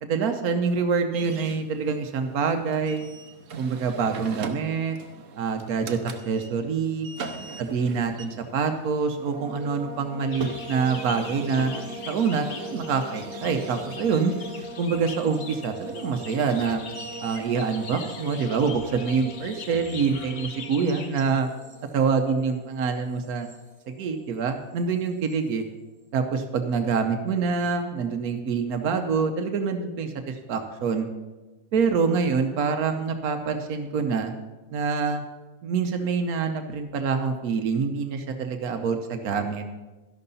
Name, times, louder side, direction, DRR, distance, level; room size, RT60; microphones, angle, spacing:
voice 1, 0.0-3.0 3.6-5.0 5.4-6.0 6.2-7.1 7.6-11.7 12.1-14.3 14.8-16.8 17.2-21.5 21.9-23.5 23.9-25.6 26.1-31.1 31.7-34.3 34.7-35.2 35.6-39.7, right 5 dB, 90° right, 6 dB, 1.3 m, -26 dB
sound 1, 1.1-19.5, right 3 dB, 65° right, 1.2 m, -41 dB
sound 2, 9.2-24.4 24.7-25.4, right 2 dB, 30° right, 2.1 m, -42 dB
sound 3, 10.3-21.2, left 6 dB, 60° left, 1.2 m, -43 dB
13.0 x 11.0 x 4.0 m, 1.2 s
omnidirectional pair, 1.5 m